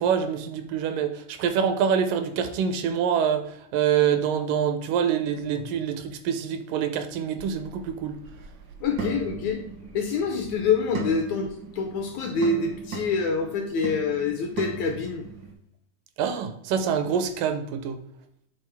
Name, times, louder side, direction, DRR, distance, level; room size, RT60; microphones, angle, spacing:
voice 1, 0.0-3.5 3.7-8.2 16.2-18.0, right 8 dB, 85° right, 8 dB, 2.2 m, -25 dB
sound 1, 7.4-15.5, right 4 dB, 65° right, 1.0 m, -38 dB
voice 2, 8.8-9.6 9.9-15.2, left 4 dB, 75° left, 4 dB, 1.7 m, -26 dB
8.3 x 3.8 x 3.4 m, 0.73 s
omnidirectional pair, 3.9 m